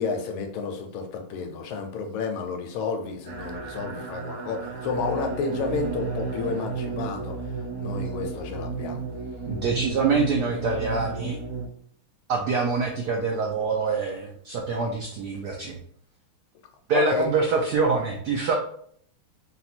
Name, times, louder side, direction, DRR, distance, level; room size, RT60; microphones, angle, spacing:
voice 1, 0.0-7.4 7.8-9.0 16.9-17.3, left 5 dB, 80° left, 5 dB, 1.4 m, -31 dB
sound 1, 3.3-11.7, right 4 dB, 60° right, 1.1 m, -33 dB
voice 2, 9.5-11.4 12.3-15.8 16.9-18.5, right 4 dB, 80° right, 1 dB, 0.9 m, -25 dB
4.0 x 2.3 x 4.3 m, 0.62 s
omnidirectional pair, 2.4 m